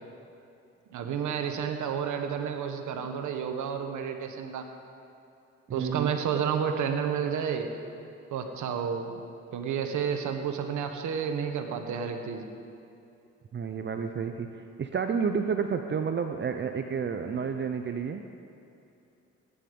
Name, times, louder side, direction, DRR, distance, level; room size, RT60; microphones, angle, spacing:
voice 1, 0.9-4.7 5.7-7.7 8.3-9.2 9.5-12.4, right 7 dB, 75° right, 5 dB, 1.5 m, -31 dB
voice 2, 5.7-6.2 13.5-18.2, right 6 dB, 40° right, 6 dB, 0.7 m, -30 dB
16.5 x 10.0 x 5.4 m, 2.7 s
cardioid pair, 90°, 30 cm